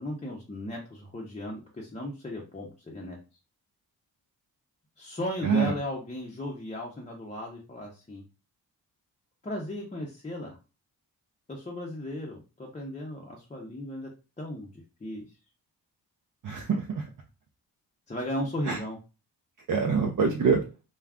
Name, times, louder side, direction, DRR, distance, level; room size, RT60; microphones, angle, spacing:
voice 1, 0.0-3.2 5.0-8.2 9.4-10.6 11.5-14.1 14.4-15.3 18.1-19.0, left 1 dB, 20° left, -2 dB, 0.6 m, -36 dB
voice 2, 5.4-5.8 16.4-17.1 18.6-18.8 19.7-20.6, right 5 dB, 55° right, 2 dB, 0.5 m, -25 dB
2.3 x 2.3 x 3.5 m, 0.32 s
cardioid pair, 75°, 40 cm